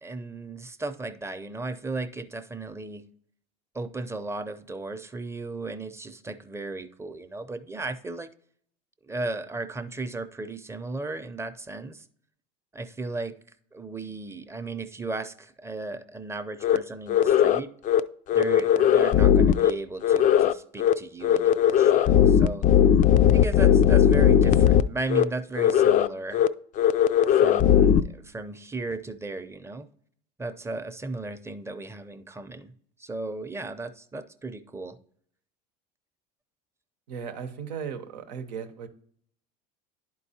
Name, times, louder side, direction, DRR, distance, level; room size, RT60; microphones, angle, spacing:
voice 1, 0.0-3.0 3.7-8.3 9.0-12.1 12.7-13.4 13.7-17.7 18.3-22.6 23.3-26.4 27.3-29.9 30.4-32.7 33.0-35.0, right 3 dB, 10° right, 10 dB, 0.6 m, -35 dB
sound 1, 16.6-16.8 17.1-17.6 17.9-18.0 18.3-19.7 20.0-20.5 20.8-20.9 21.2-24.8 25.1-25.2 25.6-26.1 26.3-26.5 26.8-28.0, left 9 dB, 40° left, 0.4 m, -18 dB
voice 2, 37.1-38.9, right 7 dB, 85° right, 8 dB, 0.8 m, -36 dB
11.0 x 4.6 x 2.8 m, 0.62 s
hypercardioid pair, 80°, 21 cm